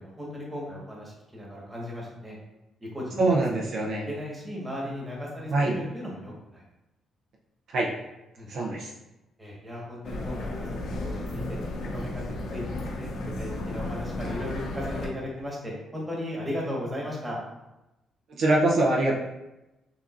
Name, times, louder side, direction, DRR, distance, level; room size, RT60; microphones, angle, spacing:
voice 1, 0.0-2.4 2.8-3.4 3.8-6.6 8.3-8.5 9.4-12.6 12.9-17.4, left 1 dB, 15° right, -4 dB, 1.4 m, -36 dB
voice 2, 3.2-4.0 5.5-5.7 7.7-7.9 8.5-8.9 18.4-19.1, right 2 dB, 70° right, -3 dB, 0.6 m, -23 dB
sound 1, 10.0-15.1, left 2 dB, 75° left, 0.7 m, -33 dB
5.6 x 2.6 x 2.5 m, 0.97 s
cardioid pair, 90°, 0 cm